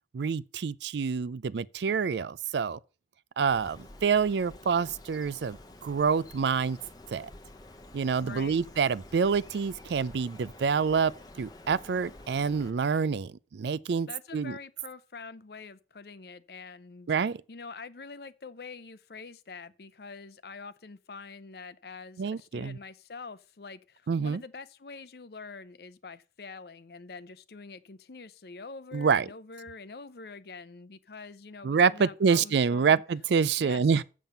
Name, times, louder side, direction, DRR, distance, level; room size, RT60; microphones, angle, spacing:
voice 1, 0.1-2.8 3.4-6.8 7.1-7.3 7.9-11.1 11.4-14.6 17.1-17.4 22.2-22.8 24.1-24.4 28.9-29.3 31.6-34.0, right 5 dB, 70° right, 0.4 m, -27 dB
Bird, 3.5-12.7, left 2 dB, 20° left, 0.8 m, -50 dB
voice 2, 8.2-8.6 14.1-17.1 17.5-33.0 33.6-33.8, left 4 dB, 60° left, 0.6 m, -45 dB
7.6 x 7.2 x 5.4 m
head